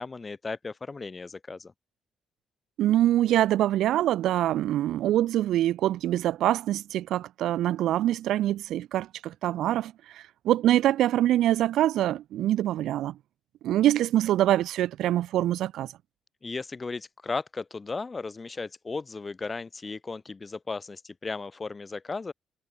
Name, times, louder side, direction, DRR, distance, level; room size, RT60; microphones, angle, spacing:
voice 1, 0.0-1.7 16.4-22.3, left 4 dB, 30° left, 0.6 m, -35 dB
voice 2, 2.8-13.2 13.6-15.9, right 13 dB, 75° right, 0.3 m, -24 dB
supercardioid pair, 70°, 0 cm